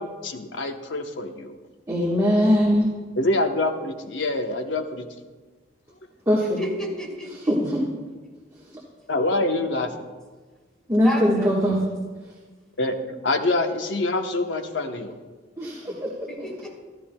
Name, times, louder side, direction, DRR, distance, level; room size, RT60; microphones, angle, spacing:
voice 1, 0.2-1.6 3.2-5.1 9.1-9.9 12.8-13.0 13.2-15.1, left 2 dB, 75° left, 5 dB, 0.9 m, -25 dB
voice 2, 1.9-2.9 6.3-6.6 7.5-7.8 10.9-11.8 15.6-16.1 16.4-16.5, equal, 20° right, -5 dB, 1.4 m, -21 dB
voice 3, 6.4-7.5 11.0-11.5 16.2-16.7, equal, 5° left, -3 dB, 2.9 m, -32 dB
14.5 x 13.5 x 2.2 m, 1.4 s
head